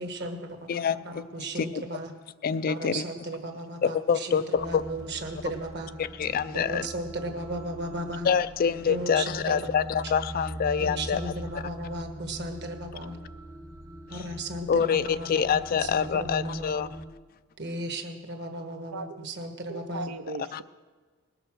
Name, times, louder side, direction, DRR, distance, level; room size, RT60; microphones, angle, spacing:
voice 1, 0.0-2.1 2.7-5.9 6.5-8.3 8.9-9.6 10.8-13.2 14.1-15.6 15.9-16.9 17.6-20.1, right 1 dB, 50° right, 6 dB, 1.3 m, -35 dB
voice 2, 0.7-1.3 1.5-1.9 2.4-3.0 3.8-4.8 6.0-6.9 8.2-11.6 14.1-14.3 14.7-16.9 20.5-20.6, left 7 dB, 40° left, 14 dB, 0.3 m, -26 dB
sound 1, 4.5-17.1, right 1 dB, 15° right, 0.7 m, -41 dB
voice 3, 18.9-19.3 19.7-20.6, right 3 dB, 75° right, 9 dB, 0.5 m, -37 dB
20.0 x 6.7 x 6.2 m, 1.4 s
head